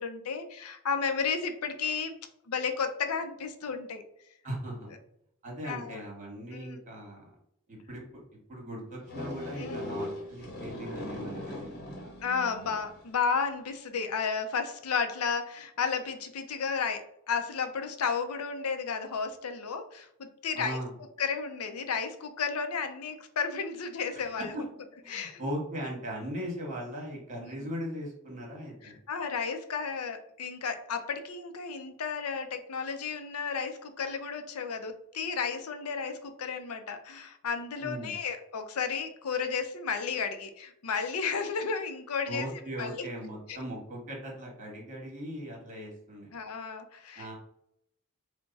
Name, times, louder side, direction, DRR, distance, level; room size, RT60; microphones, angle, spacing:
voice 1, 0.0-2.1 2.5-4.0 5.6-6.0 6.5-6.8 9.6-9.8 12.2-20.8 21.2-24.6 25.1-25.4 27.4-27.7 28.8-43.1 43.5-43.6 46.3-47.3, left 5 dB, 85° left, 7 dB, 0.6 m, -33 dB
voice 2, 4.4-4.9 5.4-7.3 7.7-8.0 8.5-12.0 20.5-20.9 24.3-24.6 25.0-29.0 37.8-38.1 42.3-46.3 47.1-47.4, equal, 35° right, -1 dB, 1.5 m, -39 dB
sound 1, 9.1-13.1, left 1 dB, 45° left, 1.1 m, -39 dB
4.5 x 2.2 x 4.0 m, 0.74 s
head